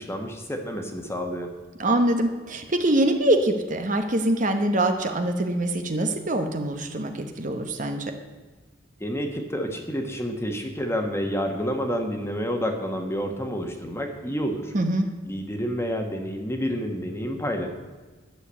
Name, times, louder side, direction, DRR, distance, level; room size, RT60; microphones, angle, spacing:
voice 1, 0.0-1.6 9.0-14.7 15.2-17.7, equal, 15° left, 4 dB, 1.4 m, -29 dB
voice 2, 1.8-8.1 14.7-15.1, right 1 dB, 40° right, 6 dB, 1.0 m, -24 dB
11.5 x 7.0 x 8.2 m, 1.3 s
head